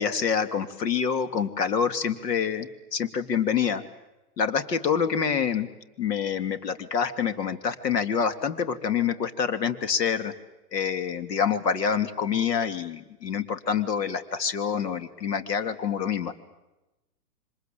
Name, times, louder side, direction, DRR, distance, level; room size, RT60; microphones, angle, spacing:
voice 1, 0.0-3.8 4.4-5.7 6.0-10.3 10.7-16.3, left 7 dB, 75° left, 10 dB, 3.2 m, -26 dB
28.5 x 25.5 x 7.8 m, 1.0 s
hypercardioid pair, 150°, 49 cm